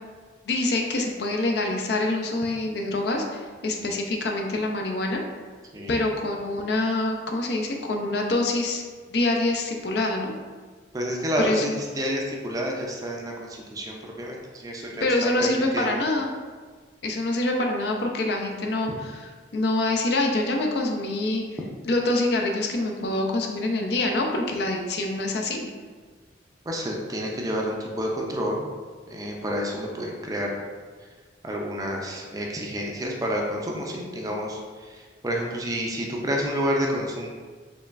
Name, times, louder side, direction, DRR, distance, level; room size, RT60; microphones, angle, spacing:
voice 1, 0.5-5.2 5.9-8.8 9.1-10.3 11.4-11.8 15.0-16.3 17.0-21.4 21.9-25.7, left 2 dB, 60° left, 2 dB, 0.5 m, -25 dB
voice 2, 5.7-6.0 10.9-15.3 15.7-15.9 26.7-28.7 29.1-30.6 31.4-37.3, equal, 20° right, -1 dB, 0.4 m, -29 dB
4.4 x 3.1 x 2.5 m, 1.5 s
head